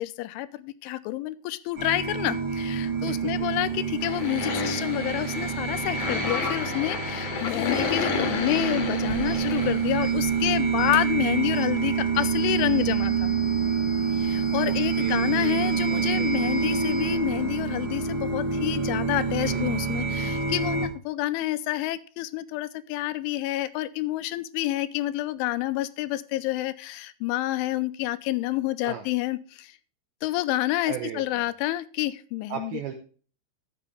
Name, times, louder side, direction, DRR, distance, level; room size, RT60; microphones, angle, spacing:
voice 1, 0.0-13.3 14.1-29.8 30.2-32.7, left 15 dB, 90° left, 14 dB, 3.1 m, -28 dB
sound 1, 1.8-20.9, right 6 dB, 50° right, 1.1 m, -27 dB
sound 2, 4.0-10.5 10.9-11.0 11.3-11.4 11.8-11.9 12.1-12.2, left 4 dB, 55° left, 2.5 m, -31 dB
sound 3, 7.7-7.9 8.5-8.6 9.2-9.4 10.0-10.2 10.8-10.9 11.5-11.7 12.1-17.1, left 3 dB, 35° left, 1.7 m, -42 dB
voice 2, 14.7-16.8 19.4-19.7 28.8-29.1 30.9-31.5 32.5-32.9, right 9 dB, 80° right, 6 dB, 2.2 m, -37 dB
12.5 x 8.0 x 3.2 m, 0.41 s
omnidirectional pair, 5.5 m